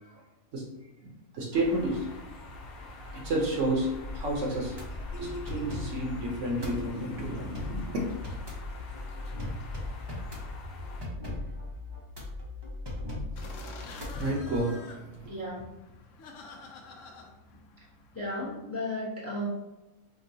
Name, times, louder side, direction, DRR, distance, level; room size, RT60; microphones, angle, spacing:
voice 1, 1.0-2.1 3.1-8.0 13.4-15.3, right 1 dB, 65° right, -1 dB, 1.0 m, -31 dB
sound 1, 1.5-11.0, left 2 dB, 90° left, 1.2 m, -44 dB
sound 2, 4.4-14.6, left 2 dB, 30° right, 0.5 m, -39 dB
sound 3, 13.4-18.5, left 3 dB, 70° left, 0.9 m, -47 dB
voice 2, 15.3-15.7 18.1-19.5, left 1 dB, 15° left, -5 dB, 0.7 m, -34 dB
5.1 x 2.2 x 2.7 m, 1.0 s
omnidirectional pair, 1.5 m